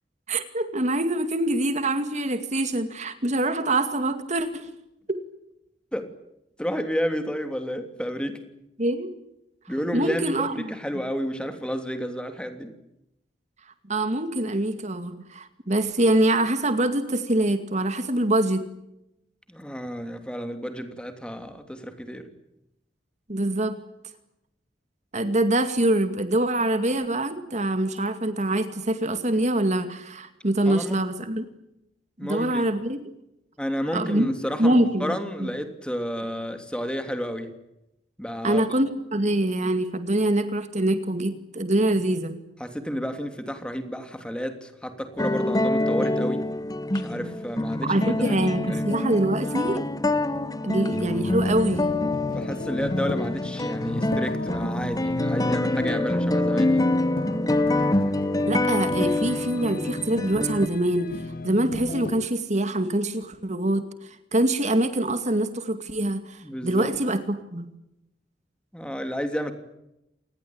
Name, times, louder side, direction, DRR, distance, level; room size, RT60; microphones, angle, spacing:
voice 1, 0.3-4.7 5.1-5.2 8.8-9.1 9.9-10.7 13.9-18.7 23.3-23.8 25.1-31.5 32.2-33.0 33.9-34.3 34.6-35.1 35.4-35.5 38.4-42.3 47.1-47.3 47.8-49.8 50.6-51.9 58.5-61.1 61.4-67.7, right 1 dB, 40° right, 9 dB, 2.3 m, -24 dB
voice 2, 6.6-8.4 9.7-12.7 19.5-22.3 30.7-31.0 32.2-32.6 33.6-37.5 38.2-38.6 42.6-46.5 46.9-48.9 52.3-56.9 66.4-66.9 68.7-69.5, equal, 5° left, 7 dB, 3.0 m, -31 dB
sound 1, 45.2-60.7, left 1 dB, 20° left, 1.1 m, -26 dB
sound 2, 49.7-62.3, left 2 dB, 55° left, 1.1 m, -35 dB
27.5 x 20.0 x 8.8 m, 0.85 s
head